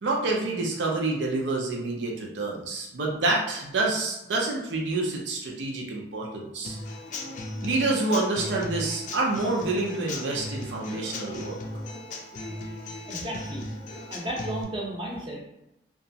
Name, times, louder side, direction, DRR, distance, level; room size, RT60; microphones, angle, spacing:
voice 1, 0.0-6.8 7.6-11.6, right 2 dB, 85° right, -1 dB, 0.5 m, -28 dB
Human voice / Acoustic guitar / Drum, 6.6-14.6, left 2 dB, 45° left, 0.4 m, -37 dB
voice 2, 13.1-13.7 14.1-15.4, right 1 dB, 30° right, -2 dB, 0.7 m, -33 dB
2.9 x 2.3 x 2.7 m, 0.88 s
head